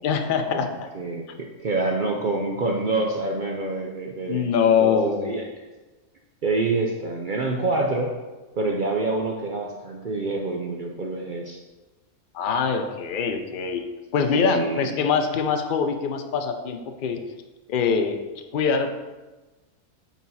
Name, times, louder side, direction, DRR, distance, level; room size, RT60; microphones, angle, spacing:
voice 1, 0.0-0.7 4.3-5.4 12.3-13.8 14.1-17.2 17.7-18.2 18.5-18.9, left 6 dB, 55° left, 6 dB, 0.5 m, -23 dB
voice 2, 0.9-4.4 4.8-5.5 6.4-8.1 8.6-11.6 14.3-15.0, right 2 dB, 60° right, 0 dB, 0.5 m, -27 dB
8.4 x 4.1 x 4.1 m, 1.2 s
omnidirectional pair, 1.6 m